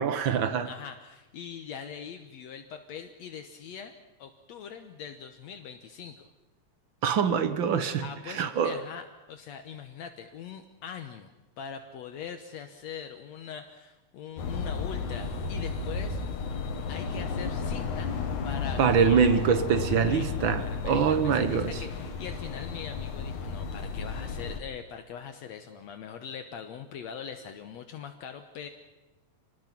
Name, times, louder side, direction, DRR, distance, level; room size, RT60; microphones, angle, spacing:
voice 1, 0.0-0.7 7.0-8.8 18.8-21.8, right 7 dB, 60° right, 11 dB, 1.3 m, -24 dB
voice 2, 0.7-3.9 4.2-6.3 8.0-11.3 11.6-16.2 16.9-18.1 18.4-19.2 19.8-28.7, left 7 dB, 70° left, 7 dB, 2.1 m, -42 dB
sound 1, 14.4-24.6, left 5 dB, 85° left, 3.2 m, -33 dB
27.5 x 20.0 x 6.0 m, 1.0 s
omnidirectional pair, 3.4 m